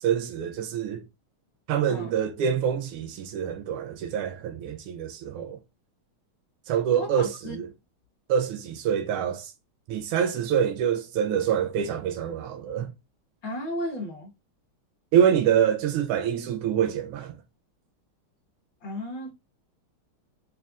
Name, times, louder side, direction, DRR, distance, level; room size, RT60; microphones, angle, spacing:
voice 1, 0.0-1.0 1.7-5.6 6.7-7.7 8.3-9.5 9.9-12.9 15.1-17.4, right 8 dB, 80° right, 1.4 m, -26 dB
voice 2, 7.0-7.6 13.4-14.3 18.8-19.3, left 1 dB, 60° left, 2.0 m, -34 dB
6.6 x 2.3 x 2.4 m
omnidirectional pair, 2.3 m